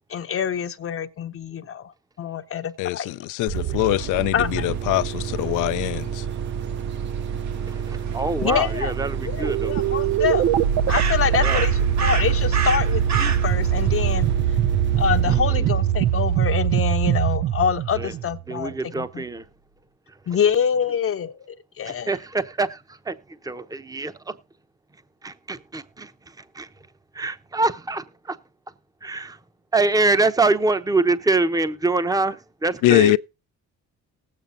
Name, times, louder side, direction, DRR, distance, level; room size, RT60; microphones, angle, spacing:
voice 1, 0.1-1.9 2.2-3.1 4.3-4.5 8.4-8.9 9.2-10.5 10.9-14.3 15.0-19.2 20.3-22.1, left 8 dB, 50° left, 0.8 m, -25 dB
voice 2, 2.8-6.2 32.8-33.2, left 17 dB, 90° left, 0.5 m, -22 dB
sound 1, 3.5-16.9, right 8 dB, 40° right, 0.5 m, -29 dB
sound 2, 3.8-14.3, right 7 dB, 65° right, 1.4 m, -34 dB
voice 3, 7.7-9.8 11.4-11.6 15.3-15.7 18.0-18.1 18.5-19.4 21.9-23.1 23.4-24.3 25.2-26.1 26.5-26.7 27.1-28.4 29.0-29.4 29.7-33.2, right 3 dB, 10° right, 0.8 m, -24 dB
sound 3, 9.4-18.8, right 9 dB, 85° right, 0.7 m, -22 dB
19.5 x 8.5 x 2.6 m
cardioid pair, 90°, 30 cm